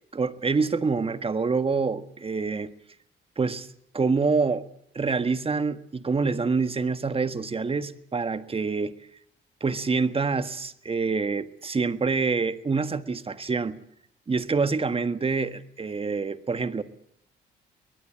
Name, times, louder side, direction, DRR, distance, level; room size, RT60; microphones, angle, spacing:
voice 1, 0.1-2.7 3.4-3.7 3.9-4.7 4.9-8.9 9.6-13.8 14.3-16.8, right 4 dB, 30° right, 1.6 m, -26 dB
23.0 x 20.5 x 8.6 m
cardioid pair, 90°, 20 cm